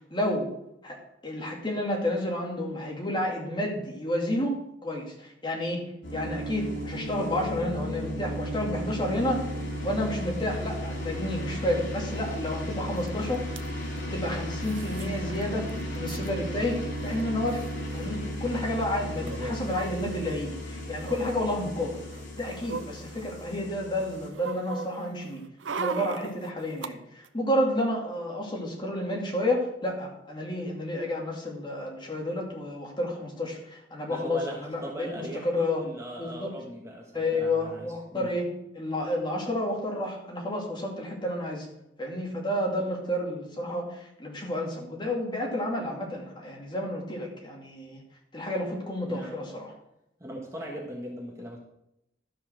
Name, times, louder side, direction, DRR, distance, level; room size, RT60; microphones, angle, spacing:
voice 1, 0.1-0.5 0.8-1.0 1.2-9.5 9.8-13.4 14.1-22.0 22.4-25.4 25.7-35.8 36.2-36.5 37.1-41.7 42.0-48.0 48.3-49.7, left 1 dB, 25° left, -2 dB, 2.4 m, -30 dB
sound 1, 6.0-24.3, equal, 75° left, 3.0 m, -35 dB
sound 2, 13.1-13.2 13.3-13.7 14.6-15.1 15.4-15.5 15.7-16.3 17.1-17.2 17.5-17.7 19.2-20.4 21.0-21.3 22.0-23.6 24.0-26.9 27.2-27.3, right 5 dB, 85° right, 0.6 m, -39 dB
voice 2, 19.2-19.6 34.0-38.3 49.0-49.6 50.2-51.6, equal, 15° right, -1 dB, 1.3 m, -39 dB
12.5 x 5.6 x 6.3 m, 0.82 s
head